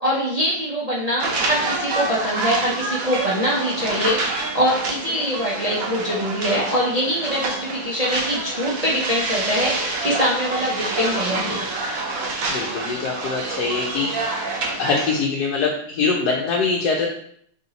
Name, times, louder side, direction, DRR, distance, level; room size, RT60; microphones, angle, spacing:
voice 1, 0.0-11.7, equal, 50° right, -7 dB, 0.4 m, -23 dB
sound 1, 1.2-15.2, right 3 dB, 65° right, 1.1 m, -27 dB
voice 2, 12.5-14.5 14.8-17.1, left 4 dB, 90° left, -1 dB, 1.2 m, -23 dB
3.5 x 2.8 x 3.9 m, 0.66 s
omnidirectional pair, 1.7 m